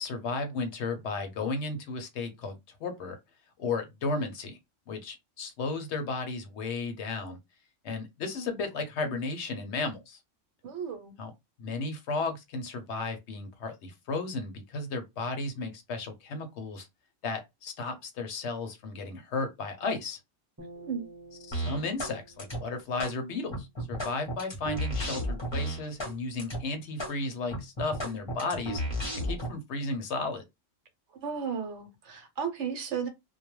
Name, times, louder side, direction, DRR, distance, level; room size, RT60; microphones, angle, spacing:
voice 1, 0.0-3.2 3.6-4.6 4.9-7.4 7.8-10.2 11.2-11.3 11.6-16.9 17.2-20.2 21.5-28.8 29.2-30.4, left 3 dB, 65° left, 0.9 m, -34 dB
voice 2, 10.6-11.1 20.8-21.0 31.1-33.1, right 6 dB, 65° right, 1.0 m, -34 dB
sound 1, 20.6-23.9, right 2 dB, 15° right, 0.8 m, -51 dB
sound 2, 21.5-22.1 22.4-23.1 23.5-26.1 26.4-26.6 27.0-27.1 27.5-29.5, equal, 25° left, 0.8 m, -33 dB
2.3 x 2.2 x 3.0 m
omnidirectional pair, 1.3 m